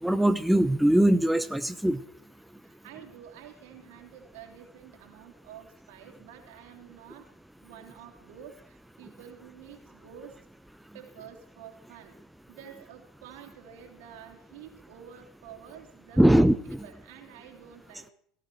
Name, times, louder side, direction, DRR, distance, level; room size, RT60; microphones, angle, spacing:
voice 1, 0.0-2.0 16.2-16.8, right 1 dB, ahead, 10 dB, 0.8 m, -21 dB
voice 2, 2.6-7.3 7.6-10.4 10.9-12.1 12.5-16.3 16.7-18.1, right 9 dB, 70° right, 3 dB, 3.0 m, -49 dB
17.5 x 13.5 x 4.6 m, 0.66 s
hypercardioid pair, 80°, 0 cm